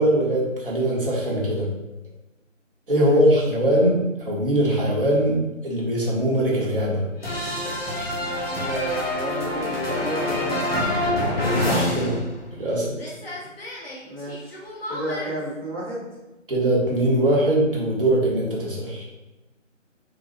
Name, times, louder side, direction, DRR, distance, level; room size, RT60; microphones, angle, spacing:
voice 1, 0.0-1.7 2.9-7.0 11.6-12.2 12.6-12.9 16.5-19.0, right 1 dB, 45° right, -4 dB, 1.1 m, -21 dB
voice 2, 3.0-3.4 8.5-10.6 14.1-14.5 14.9-16.1, equal, 15° right, -19 dB, 0.9 m, -31 dB
sound 1, 7.2-12.7 12.9-15.3, left 1 dB, 50° left, 0.9 m, -27 dB
3.9 x 2.4 x 3.8 m, 1.0 s
figure-of-eight pair, 155°, 39 cm